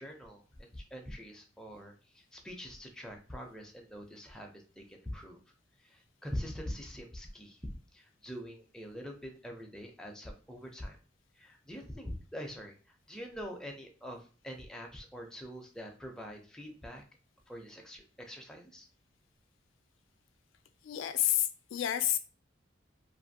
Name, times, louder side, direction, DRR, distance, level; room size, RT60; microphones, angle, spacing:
voice 1, 0.0-5.4 5.8-7.6 7.9-11.0 11.4-17.0 17.5-18.9, equal, 5° left, 1 dB, 0.5 m, -44 dB
voice 2, 20.8-22.2, left 12 dB, 85° left, 10 dB, 0.3 m, -29 dB
2.5 x 2.5 x 2.6 m, 0.37 s
head